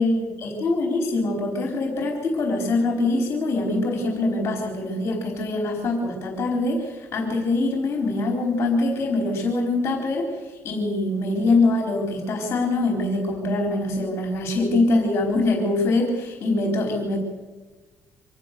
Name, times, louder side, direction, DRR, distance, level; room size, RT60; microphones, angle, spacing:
voice 1, 0.0-17.2, left 2 dB, 40° left, 2 dB, 4.3 m, -23 dB
25.0 x 19.5 x 6.9 m, 1.2 s
cardioid pair, 155°, 6 cm